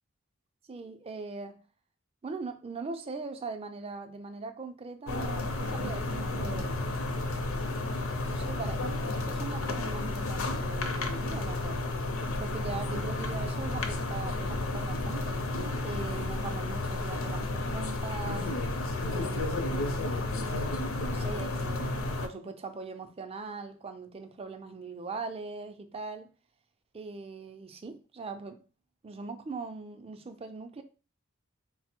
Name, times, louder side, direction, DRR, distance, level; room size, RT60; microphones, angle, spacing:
voice 1, 0.7-1.6 2.2-6.7 8.2-11.8 12.4-15.4 15.8-18.5 19.0-20.0 21.1-26.3 26.9-28.6 29.0-30.8, right 4 dB, 30° right, 0.4 m, -41 dB
sound 1, 5.1-22.3, left 2 dB, 70° left, 0.6 m, -32 dB
4.0 x 2.0 x 4.3 m
head